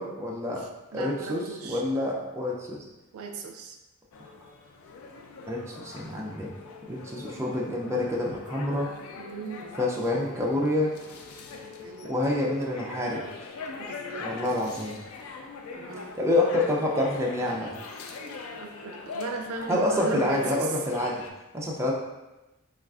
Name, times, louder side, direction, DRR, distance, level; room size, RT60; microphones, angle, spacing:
voice 1, 0.0-0.6 0.9-1.4 1.7-2.9 5.5-6.5 6.9-8.9 9.8-10.9 12.0-13.2 14.2-15.0 16.2-17.7 19.7-21.2 21.5-21.9, left 1 dB, 15° right, -3 dB, 0.4 m, -27 dB
voice 2, 0.6-1.8 3.1-3.8 9.2-9.8 11.8-12.4 13.8-14.7 15.7-16.1 18.6-20.7, right 3 dB, 85° right, 3 dB, 0.4 m, -37 dB
sound 1, 4.1-21.3, left 4 dB, 85° left, 0.4 m, -42 dB
3.4 x 2.3 x 2.3 m, 1.0 s
head